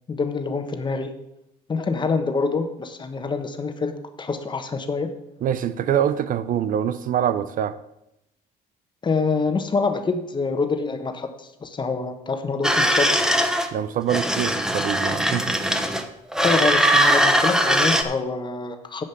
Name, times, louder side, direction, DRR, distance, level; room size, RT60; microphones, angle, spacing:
voice 1, 0.1-1.1 1.7-5.1 9.0-13.1 16.4-19.0, left 4 dB, 25° left, 1.2 m, -26 dB
voice 2, 5.4-7.8 13.7-15.5, right 9 dB, 55° right, 0.6 m, -24 dB
sound 1, 12.6-13.7 14.1-16.0 16.3-18.0, equal, 5° right, 0.9 m, -20 dB
10.0 x 5.2 x 7.0 m
cardioid pair, 110°, 17 cm